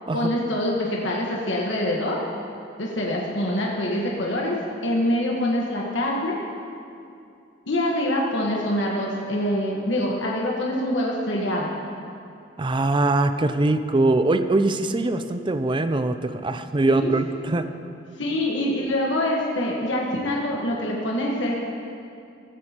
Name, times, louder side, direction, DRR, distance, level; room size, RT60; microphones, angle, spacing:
voice 1, 0.1-2.2 2.8-4.6 4.8-6.3 7.7-11.7 16.9-17.1 18.2-21.5, left 1 dB, 70° left, -3 dB, 1.4 m, -25 dB
voice 2, 12.6-17.7, right 2 dB, 25° right, 9 dB, 0.5 m, -22 dB
15.0 x 13.5 x 3.0 m, 2.5 s
head